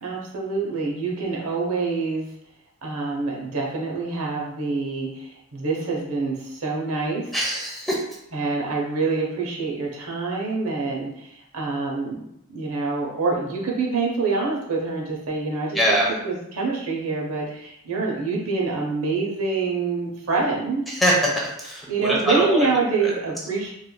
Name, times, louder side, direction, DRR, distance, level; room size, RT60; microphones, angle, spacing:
voice 1, 0.0-2.3 2.8-7.3 8.3-12.2 12.5-20.8 21.9-23.7, right 4 dB, 70° right, -2 dB, 0.7 m, -26 dB
voice 2, 7.3-8.0 15.7-16.1 20.9-22.7 23.0-23.1, equal, ahead, -4 dB, 0.5 m, -23 dB
3.1 x 2.5 x 2.2 m, 0.78 s
head